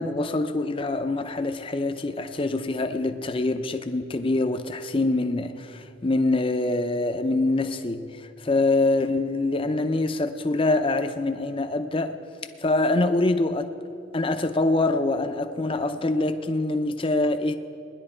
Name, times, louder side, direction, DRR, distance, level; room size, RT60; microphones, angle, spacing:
voice 1, 0.0-12.2 12.6-13.7 14.1-17.5, left 2 dB, 25° left, 0.5 m, -25 dB
19.5 x 11.0 x 4.4 m
head